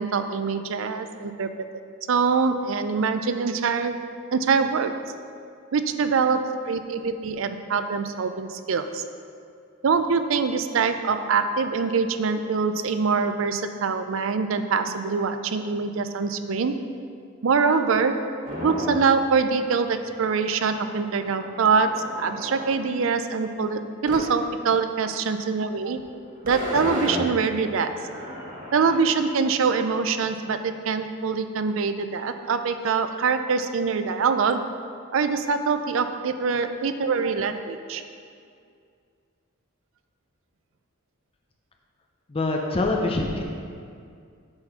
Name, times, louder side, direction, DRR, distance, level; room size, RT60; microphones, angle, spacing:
voice 1, 0.0-1.5 2.1-4.0 4.3-4.9 5.7-9.0 9.8-16.8 17.4-18.3 18.6-26.0 26.4-27.9 28.7-34.6 35.1-38.0, right 5 dB, 65° right, 9 dB, 0.4 m, -24 dB
sound 1, 18.4-19.2 19.6-19.7 19.9-22.6 24.1-24.3 24.7-24.8 25.9-26.0 26.3-29.0, left 1 dB, 45° right, 1.6 m, -34 dB
voice 2, 42.3-43.4, left 2 dB, 25° left, 1 dB, 0.5 m, -24 dB
7.7 x 4.1 x 5.8 m, 2.3 s
head